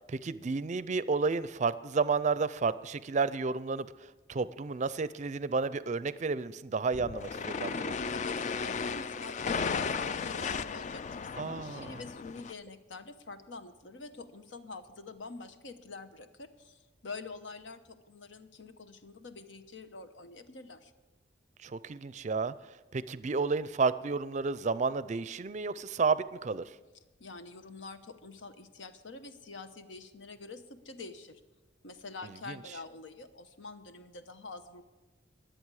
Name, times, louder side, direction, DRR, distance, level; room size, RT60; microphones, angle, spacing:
voice 1, 0.1-7.9 11.4-12.0 21.6-22.5 22.9-26.6 32.5-32.6, right 4 dB, 40° right, 16 dB, 0.4 m, -31 dB
sound 1, 6.9-12.5, left 5 dB, 40° left, 0.3 m, -35 dB
voice 2, 7.7-20.9 27.2-31.4 31.8-34.8, left 3 dB, 90° left, 9 dB, 0.9 m, -46 dB
22.0 x 7.9 x 4.8 m, 1.2 s
head